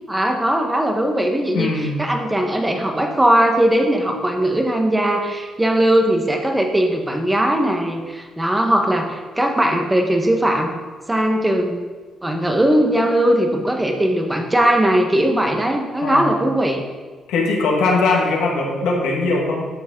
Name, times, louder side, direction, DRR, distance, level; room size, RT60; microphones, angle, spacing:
voice 1, 0.1-10.8 11.1-11.8 12.2-16.8, right 1 dB, 10° right, 3 dB, 1.4 m, -19 dB
voice 2, 1.5-2.0 16.0-16.3 17.3-19.7, left 3 dB, 90° left, -1 dB, 1.8 m, -20 dB
12.5 x 6.3 x 3.9 m, 1.4 s
cardioid pair, 90°, 0 cm